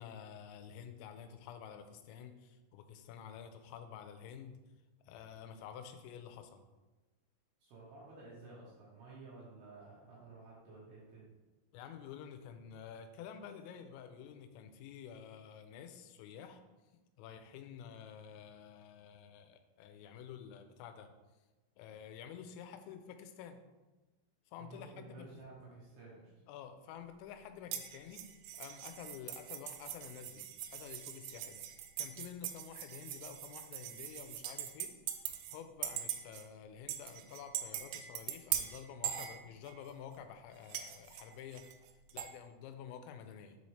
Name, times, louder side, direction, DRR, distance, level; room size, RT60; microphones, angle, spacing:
voice 1, 0.0-4.6 5.0-6.6 11.7-16.6 17.2-21.1 21.8-23.6 24.5-25.3 26.5-28.2 28.5-31.6 32.0-41.6 42.1-43.6, left 8 dB, 90° left, 7 dB, 3.2 m, -50 dB
voice 2, 7.6-11.3 24.6-26.3, right 3 dB, 65° right, -6 dB, 2.8 m, -53 dB
sound 1, 27.7-35.6 35.8-36.5 36.9-39.9 40.7-42.3, right 11 dB, 85° right, 2.8 m, -42 dB
7.3 x 4.1 x 3.2 m, 1.1 s
omnidirectional pair, 5.8 m